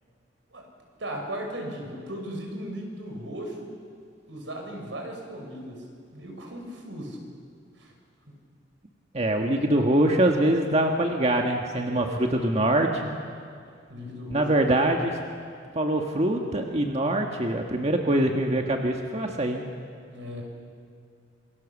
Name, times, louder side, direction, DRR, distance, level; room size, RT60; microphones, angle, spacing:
voice 1, 1.0-3.7 4.3-5.8 6.1-7.2 7.8-7.9 8.3-8.4 11.9-12.2 13.9-14.9 20.1-20.4, equal, 85° right, 2 dB, 5.9 m, -37 dB
voice 2, 9.1-13.1 14.3-15.1 15.7-19.6, right 1 dB, 35° right, 2 dB, 1.6 m, -24 dB
27.0 x 24.0 x 7.4 m, 2.3 s
head